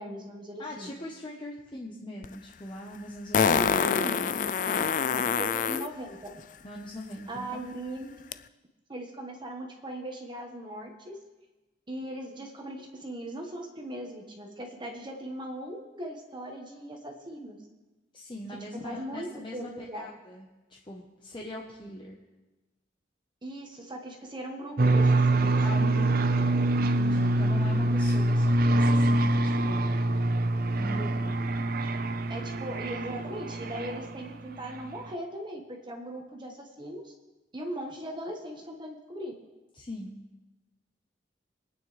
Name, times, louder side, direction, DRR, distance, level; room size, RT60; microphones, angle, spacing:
voice 1, 0.0-0.9 3.6-4.3 5.4-6.3 7.3-8.2 8.9-11.2 11.9-17.6 18.7-20.1 23.4-25.6 32.3-37.1 37.5-39.3, right 1 dB, 25° right, 1 dB, 1.3 m, -39 dB
voice 2, 0.6-3.7 4.7-5.4 6.6-7.6 18.1-22.2 25.6-29.9 30.8-31.4 39.7-40.2, left 1 dB, 25° left, -2 dB, 1.0 m, -41 dB
Fart, 2.2-2.3 3.3-5.9 8.3-8.4, left 6 dB, 45° left, 0.4 m, -25 dB
sound 1, 24.8-34.3, right 2 dB, 55° right, 0.6 m, -25 dB
23.5 x 9.3 x 3.3 m, 1.1 s
head